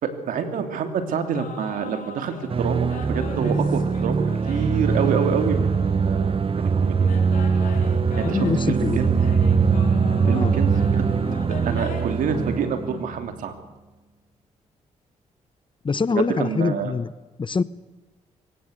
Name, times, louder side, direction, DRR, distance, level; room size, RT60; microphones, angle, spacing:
voice 1, 0.0-7.0 8.2-9.1 10.3-11.0 11.5-13.5 16.1-16.9, right 6 dB, 85° right, 7 dB, 2.9 m, -27 dB
sound 1, 1.3-2.5 2.9-6.5 7.0-12.0, left 5 dB, 80° left, 3.9 m, -40 dB
sound 2, 2.5-13.2, right 5 dB, 45° right, 1.1 m, -22 dB
voice 2, 8.2-9.1 10.3-10.5 15.8-17.1 17.4-17.6, left 4 dB, 35° left, 16 dB, 1.1 m, -24 dB
23.0 x 18.5 x 8.0 m, 1.1 s
cardioid pair, 65°, 14 cm